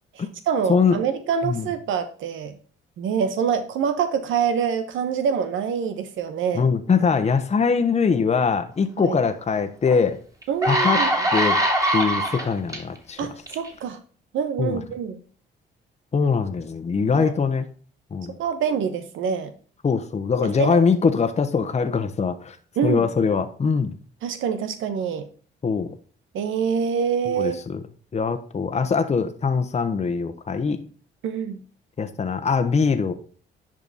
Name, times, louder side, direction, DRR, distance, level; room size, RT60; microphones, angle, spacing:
voice 1, 0.1-2.5 3.0-6.7 9.0-9.2 10.5-11.2 13.2-14.0 14.3-15.2 17.1-17.3 18.4-19.5 20.4-20.8 22.8-23.1 24.2-25.2 26.3-27.6 31.2-31.6, right 7 dB, 80° right, 9 dB, 1.1 m, -26 dB
voice 2, 6.5-10.2 10.6-11.0 11.3-11.6 11.9-13.2 14.6-14.8 16.1-17.7 18.1-18.3 19.8-22.6 22.8-23.9 25.6-25.9 27.4-27.8 28.1-30.8 32.0-33.1, left 5 dB, 35° left, 7 dB, 1.1 m, -22 dB
sound 1, 9.9-10.0 10.4-12.8 13.5-13.7, right 1 dB, 15° right, 2.6 m, -22 dB
10.5 x 5.3 x 4.1 m, 0.41 s
cardioid pair, 90°, 20 cm